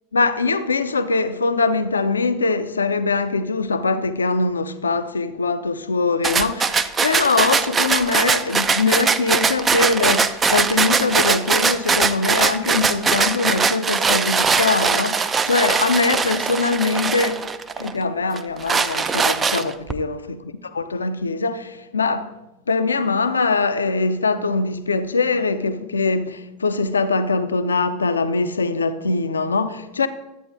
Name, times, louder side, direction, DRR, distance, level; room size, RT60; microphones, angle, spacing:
voice 1, 0.1-17.4 17.8-20.4 20.7-22.3 22.7-30.1, left 3 dB, 75° left, 0.5 m, -22 dB
sound 1, 6.2-17.9 18.4-19.9, right 5 dB, 20° right, 0.5 m, -21 dB
12.5 x 8.5 x 2.6 m
figure-of-eight pair, 80°, 0 cm